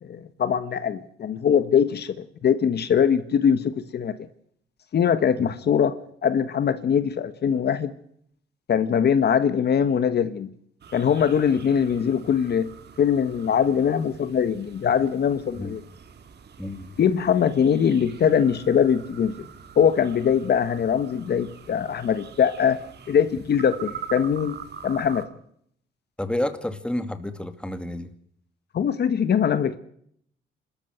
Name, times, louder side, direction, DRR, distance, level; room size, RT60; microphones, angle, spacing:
voice 1, 0.0-4.1 4.9-5.9 6.2-7.9 8.7-10.5 10.9-12.7 13.0-15.8 17.0-19.3 19.8-22.8 23.1-24.6 24.8-25.2 28.7-29.8, left 8 dB, 55° left, 12 dB, 1.4 m, -22 dB
sound 1, 10.8-25.3, right 7 dB, 55° right, 2.2 m, -44 dB
voice 2, 16.6-17.0 26.2-28.1, left 1 dB, 5° left, 9 dB, 2.3 m, -30 dB
26.5 x 13.5 x 7.9 m, 0.69 s
cardioid pair, 90°, 20 cm